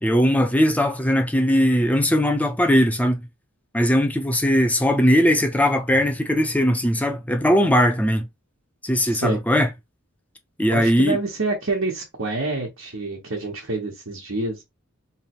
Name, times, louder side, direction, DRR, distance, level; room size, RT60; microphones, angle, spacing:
voice 1, 0.0-3.2 3.7-8.3 8.8-9.7 10.6-11.2, equal, 10° left, 0.6 m, -19 dB
voice 2, 10.7-14.6, right 3 dB, 85° right, 1.3 m, -27 dB
3.4 x 3.2 x 3.0 m
head